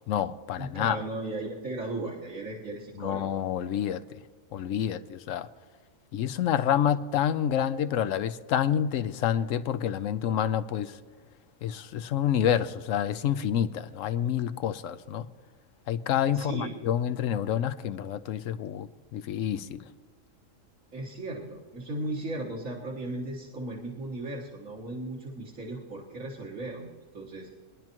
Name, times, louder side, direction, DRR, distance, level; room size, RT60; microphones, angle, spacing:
voice 1, 0.1-1.0 3.0-4.0 4.5-5.5 6.1-11.0 11.6-15.3 15.9-19.8, left 9 dB, 80° left, 13 dB, 1.0 m, -28 dB
voice 2, 0.6-3.4 16.3-16.8 20.9-26.9 27.1-27.5, right 2 dB, 80° right, -6 dB, 1.9 m, -36 dB
22.0 x 10.5 x 3.0 m, 1.5 s
omnidirectional pair, 1.3 m